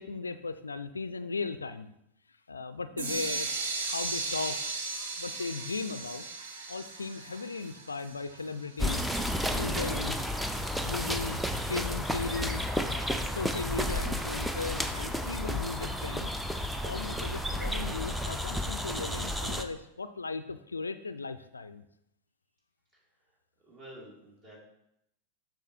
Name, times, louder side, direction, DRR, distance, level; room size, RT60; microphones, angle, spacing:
voice 1, 0.0-1.9 2.5-3.5 3.9-4.6 5.2-6.2 6.7-9.1 9.5-10.2 10.8-12.6 13.3-16.3 16.8-21.8, left 4 dB, 75° left, 12 dB, 0.3 m, -37 dB
sound 1, 3.0-8.8, right 3 dB, 65° right, 1.0 m, -36 dB
sound 2, 8.8-19.6, equal, ahead, 0.4 m, -32 dB
voice 2, 22.9-23.4 23.6-24.6, right 1 dB, 35° right, -4 dB, 2.5 m, -51 dB
6.9 x 5.9 x 2.8 m, 0.79 s
figure-of-eight pair, 90°, 0 cm